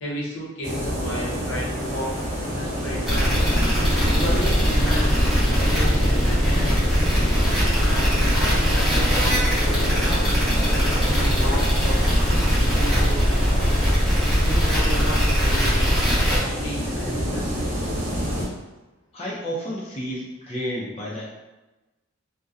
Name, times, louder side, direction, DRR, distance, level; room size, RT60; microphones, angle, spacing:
voice 1, 0.0-2.2 2.4-3.4 4.1-6.9 7.8-10.3 10.8-13.7 14.4-17.8, equal, 75° left, -5 dB, 0.7 m, -33 dB
sound 1, 0.6-18.5, equal, 40° right, 0.6 m, -28 dB
sound 2, 3.1-16.4, equal, ahead, 0.8 m, -21 dB
voice 2, 19.1-21.3, equal, 30° left, -6 dB, 0.5 m, -31 dB
2.6 x 2.1 x 2.4 m, 1.1 s
head